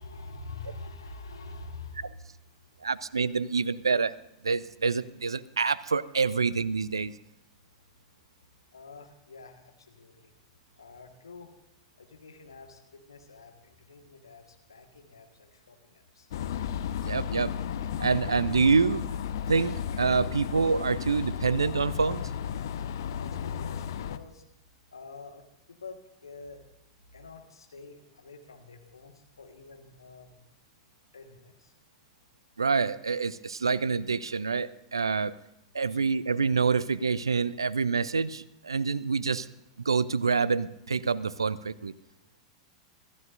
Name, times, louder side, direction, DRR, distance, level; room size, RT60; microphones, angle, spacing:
voice 1, 0.0-2.8 8.7-10.3 10.8-11.5 12.0-16.3 23.0-24.4 24.9-26.6 27.1-30.4 31.1-31.7 35.9-36.0, left 3 dB, 75° left, 4 dB, 1.6 m, -47 dB
voice 2, 2.8-4.1 4.4-7.1 17.0-17.5 18.0-19.0 19.5-22.2 32.6-35.3 35.7-39.5 39.8-41.9, right 5 dB, 75° right, 19 dB, 0.5 m, -26 dB
sound 1, 16.3-24.2, left 8 dB, 60° left, 0.8 m, -34 dB
25.0 x 15.0 x 2.6 m, 0.84 s
figure-of-eight pair, 90°, 2 cm